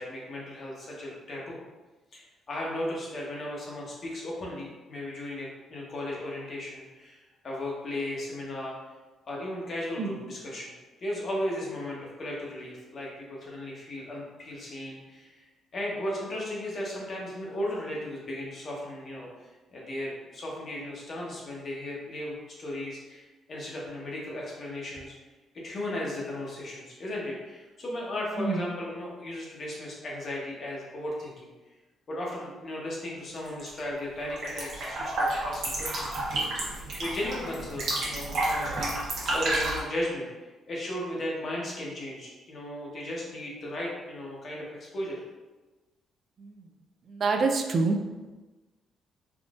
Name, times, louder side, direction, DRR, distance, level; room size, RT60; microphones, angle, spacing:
voice 1, 0.0-1.6 2.1-8.7 9.3-10.7 11.0-15.4 15.7-25.1 25.5-31.5 32.1-36.2 36.6-40.3 40.7-45.2, left 1 dB, 50° left, -3 dB, 1.0 m, -36 dB
sound 1, 33.4-33.8 34.1-39.8, right 2 dB, 65° right, 1.0 m, -30 dB
voice 2, 47.1-48.0, right 3 dB, 50° right, 4 dB, 0.3 m, -26 dB
3.6 x 2.5 x 2.4 m, 1.2 s
cardioid pair, 90°, 0 cm